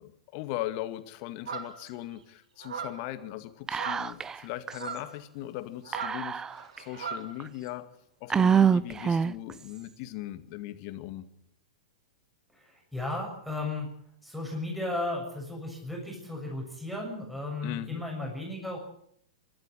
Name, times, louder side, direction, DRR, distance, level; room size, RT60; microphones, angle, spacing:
voice 1, 0.0-6.4 6.8-7.9 8.2-11.3 17.6-18.0, left 14 dB, 45° left, 10 dB, 2.0 m, -39 dB
sound 1, 1.5-1.9 2.6-3.1 3.7-4.1 4.7-5.1 5.8-7.3, right 6 dB, 70° right, 3.4 m, -38 dB
Whispering, 3.7-4.4 4.7-4.8 5.9-6.8 7.4-7.5 8.3-9.5, right 7 dB, 15° right, 0.8 m, -25 dB
voice 2, 12.9-13.9 14.2-18.8, left 2 dB, ahead, -1 dB, 6.8 m, -34 dB
25.0 x 12.5 x 9.3 m, 0.70 s
hypercardioid pair, 110°, 3 cm